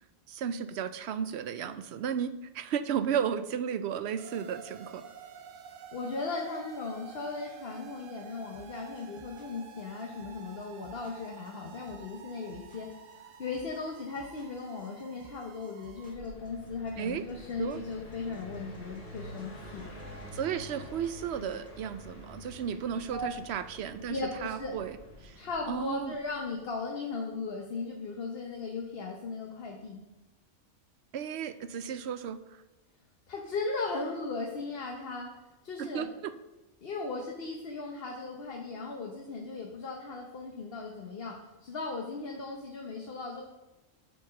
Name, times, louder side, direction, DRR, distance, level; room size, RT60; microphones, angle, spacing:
voice 1, 0.3-5.0 17.0-17.2 17.6-17.8 20.3-24.2 24.4-25.0 25.2-25.4 25.7-26.1 31.1-32.4 35.8-36.3, right 8 dB, 65° right, 12 dB, 0.8 m, -34 dB
sound 1, 4.2-16.2, right 7 dB, 90° right, 1.0 m, -50 dB
voice 2, 5.9-19.9 23.1-23.3 24.1-24.7 25.4-30.0 33.3-35.3 35.6-36.1 36.8-43.4, left 3 dB, 55° left, 0 dB, 1.1 m, -37 dB
sound 2, 8.5-21.7, right 1 dB, 5° left, 1.3 m, -57 dB
Car passing by, 15.9-26.5, equal, 70° left, 3.4 m, -48 dB
8.2 x 4.7 x 6.4 m, 1.0 s
omnidirectional pair, 1.3 m